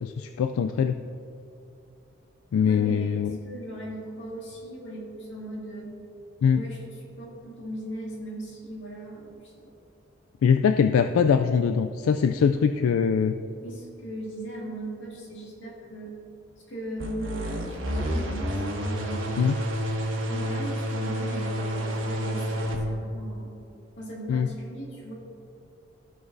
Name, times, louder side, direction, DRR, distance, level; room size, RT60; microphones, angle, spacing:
voice 1, 0.0-1.0 2.5-3.4 6.4-6.6 10.4-13.4 19.4-19.5 24.3-24.5, left 6 dB, 80° left, 8 dB, 0.3 m, -22 dB
voice 2, 2.6-3.1 3.4-5.9 6.5-9.7 13.6-16.2 16.6-19.3 20.2-23.5 24.0-25.1, right 1 dB, 55° left, -4 dB, 2.0 m, -38 dB
sound 1, 17.0-22.8, equal, 70° right, 1.4 m, -29 dB
15.5 x 6.1 x 2.6 m, 2.6 s
head